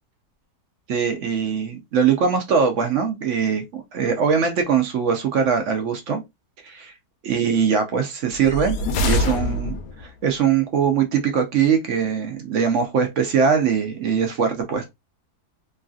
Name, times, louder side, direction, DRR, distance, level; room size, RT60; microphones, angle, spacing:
voice 1, 0.9-6.2 6.6-6.9 7.2-14.8, right 6 dB, 65° right, 0.8 m, -22 dB
sound 1, 8.3-10.1, left 2 dB, 75° left, 1.1 m, -24 dB
3.1 x 2.6 x 2.4 m
omnidirectional pair, 1.7 m